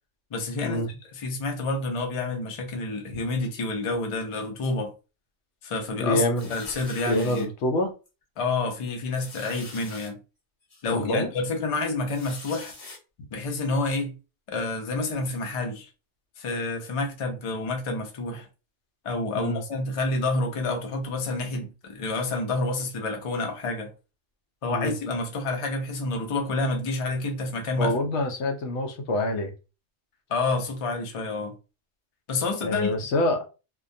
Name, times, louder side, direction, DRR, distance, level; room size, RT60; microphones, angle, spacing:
voice 1, 0.3-0.8 1.1-4.9 5.6-6.2 6.5-7.5 8.4-10.2 10.8-12.7 13.3-14.2 14.5-15.9 16.4-18.5 19.0-23.9 24.6-27.9 30.3-31.5 32.3-32.9, left 2 dB, 50° left, 0.3 m, -28 dB
voice 2, 6.0-6.5 7.1-7.9 10.9-11.3 19.4-19.6 24.7-24.9 27.8-29.5 32.6-33.5, left 1 dB, 70° left, 0.8 m, -26 dB
sound 1, 6.3-7.4 8.1-8.2 8.5-8.6 9.1-10.1 10.7-10.8 12.0-13.0, left 2 dB, 35° left, 0.9 m, -43 dB
2.2 x 2.2 x 2.5 m
omnidirectional pair, 1.3 m